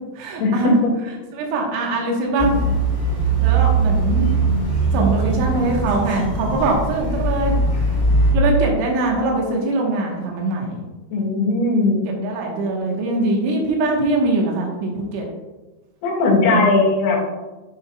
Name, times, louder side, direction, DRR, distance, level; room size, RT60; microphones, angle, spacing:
voice 1, 0.2-0.8 1.3-2.7 3.4-4.3 4.9-7.6 8.3-10.8 12.2-15.3, right 2 dB, 90° right, -1 dB, 3.7 m, -22 dB
sound 1, 2.4-8.3, right 3 dB, 40° left, 0.5 m, -20 dB
voice 2, 11.1-12.0 16.0-17.2, left 3 dB, 60° left, -4 dB, 3.4 m, -18 dB
9.4 x 7.2 x 2.3 m, 1.1 s
omnidirectional pair, 5.4 m